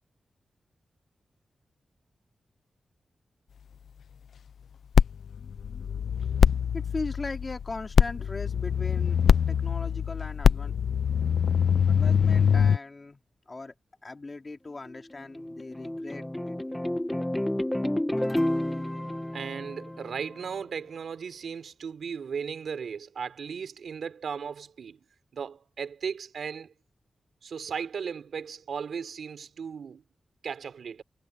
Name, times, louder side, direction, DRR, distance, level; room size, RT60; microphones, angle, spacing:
sound 1, 4.9-12.8, left 7 dB, 90° left, 0.5 m, -23 dB
voice 1, 6.7-9.2 9.5-10.7 11.9-13.7 14.0-16.6, left 3 dB, 30° left, 3.4 m, -39 dB
sound 2, 14.9-20.5, left 1 dB, 10° left, 1.2 m, -31 dB
voice 2, 19.3-25.0 25.3-26.7 27.4-30.0 30.4-31.0, right 6 dB, 85° right, 3.5 m, -36 dB
wide cardioid pair, 120°, 0 cm